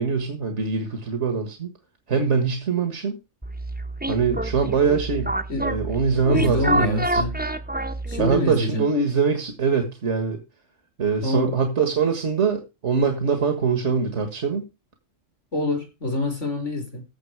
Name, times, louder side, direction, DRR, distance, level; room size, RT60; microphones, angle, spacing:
voice 1, 0.0-1.7 2.1-3.1 4.0-5.3 5.6-7.2 8.2-10.4 11.0-14.6, right 5 dB, 70° right, 6 dB, 1.9 m, -23 dB
sound 1, 3.4-8.5, right 1 dB, 10° right, 0.8 m, -27 dB
voice 2, 6.3-7.4 8.1-8.9 11.2-11.5 15.5-17.0, left 1 dB, 75° left, 3 dB, 5.3 m, -25 dB
15.0 x 6.1 x 4.8 m, 0.28 s
omnidirectional pair, 1.3 m